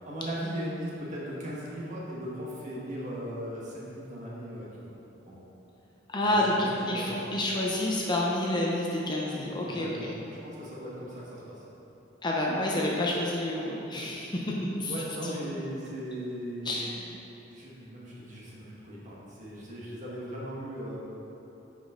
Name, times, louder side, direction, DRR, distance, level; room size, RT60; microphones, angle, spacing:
voice 1, 0.0-4.9 5.3-5.4 6.2-7.3 9.6-10.2 10.4-11.6 14.9-16.9 17.5-21.0, equal, 40° right, -6 dB, 1.6 m, -38 dB
voice 2, 6.1-10.1 12.2-14.5 14.8-14.9 15.2-15.4 16.6-17.0, left 1 dB, 25° left, -3 dB, 0.7 m, -29 dB
9.3 x 5.2 x 3.8 m, 3.0 s
head